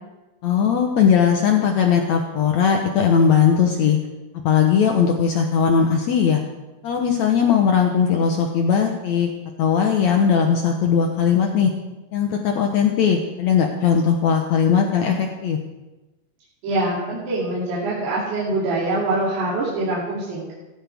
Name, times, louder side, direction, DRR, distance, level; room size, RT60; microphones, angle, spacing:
voice 1, 0.4-4.0 4.4-6.4 6.8-9.3 9.6-11.7 12.1-15.6, left 7 dB, 85° left, 2 dB, 1.5 m, -19 dB
voice 2, 16.6-20.5, right 2 dB, 75° right, -8 dB, 5.0 m, -24 dB
18.0 x 14.5 x 3.5 m, 1.1 s
omnidirectional pair, 4.7 m